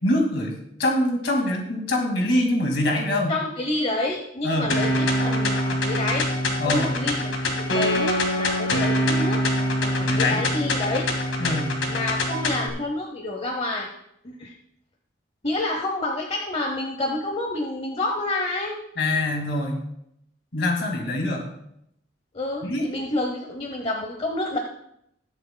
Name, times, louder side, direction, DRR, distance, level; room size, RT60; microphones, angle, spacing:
voice 1, 0.0-3.4 4.4-4.7 6.6-6.9 10.0-10.4 11.4-11.7 19.0-19.8 20.5-21.5 22.6-22.9, left 1 dB, 60° left, 1 dB, 2.2 m, -24 dB
voice 2, 3.3-6.3 6.7-9.4 9.8-11.1 11.9-13.9 14.2-14.5 15.4-18.8 22.3-24.6, left 2 dB, 30° left, 2 dB, 0.9 m, -28 dB
sound 1, 4.7-12.7, left 1 dB, 75° left, 1.9 m, -24 dB
20.0 x 7.9 x 2.2 m, 0.76 s
head